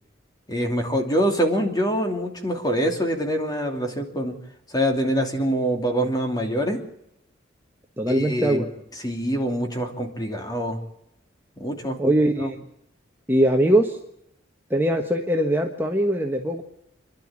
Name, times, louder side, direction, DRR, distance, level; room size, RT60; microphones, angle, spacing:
voice 1, 0.5-4.3 4.7-6.8 8.1-8.7 9.0-10.8 11.6-12.5, equal, 20° left, 3 dB, 2.9 m, -25 dB
voice 2, 8.0-8.7 12.0-12.6 13.3-14.0 14.7-16.6, right 1 dB, 10° right, 2 dB, 1.4 m, -21 dB
28.0 x 12.0 x 8.8 m, 0.80 s
head